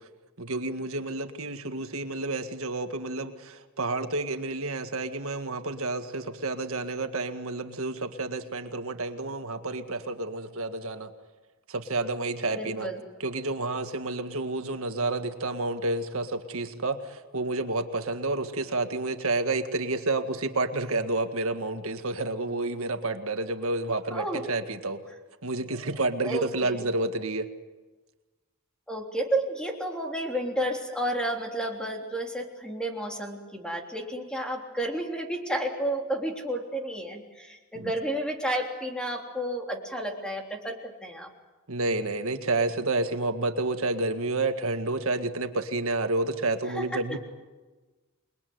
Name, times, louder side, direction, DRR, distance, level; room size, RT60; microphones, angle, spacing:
voice 1, 0.4-11.1 11.7-12.9 13.2-25.0 25.4-27.5 37.7-37.9 41.7-47.2, right 2 dB, 65° right, 7 dB, 1.9 m, -30 dB
voice 2, 12.5-13.0 24.1-24.4 26.2-26.8 28.9-41.3 46.7-47.0, right 1 dB, 5° left, 2 dB, 3.4 m, -31 dB
28.5 x 21.5 x 9.5 m, 1.2 s
head